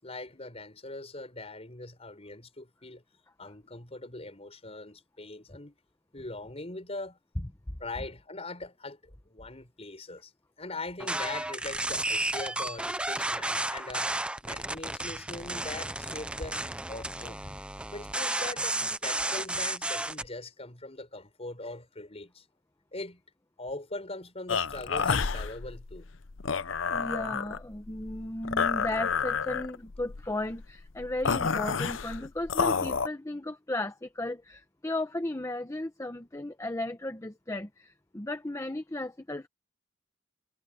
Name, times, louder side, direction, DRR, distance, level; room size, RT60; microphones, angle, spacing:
voice 1, 0.0-3.0 3.4-5.7 6.1-7.2 7.8-10.3 10.6-14.1 14.4-16.6 16.9-17.5 17.9-22.4 22.9-23.2 23.6-26.1, left 2 dB, 30° left, 5.6 m, -41 dB
sound 1, 11.0-20.3, right 2 dB, 5° right, 0.6 m, -33 dB
sound 2, 24.5-33.1, left 6 dB, 80° left, 0.8 m, -30 dB
voice 2, 26.8-39.5, left 1 dB, 15° left, 0.9 m, -35 dB
head